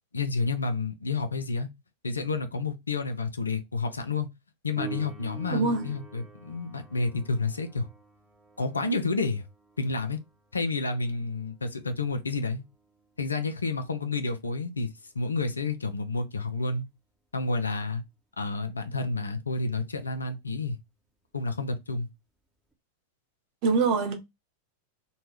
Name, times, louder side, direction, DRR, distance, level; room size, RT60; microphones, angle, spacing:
voice 1, 0.1-1.7 2.0-4.3 4.6-7.9 8.6-9.5 9.8-10.2 10.5-12.6 13.2-14.9 15.1-16.8 17.3-18.0 18.4-20.8 21.3-22.1, left 3 dB, 75° left, 0.5 m, -30 dB
Piano, 4.8-15.2 22.7-22.8, right 4 dB, ahead, 0.9 m, -48 dB
voice 2, 5.5-5.9 23.6-24.1, right 4 dB, 45° right, 0.8 m, -24 dB
2.7 x 2.3 x 3.1 m
figure-of-eight pair, 90°, 0 cm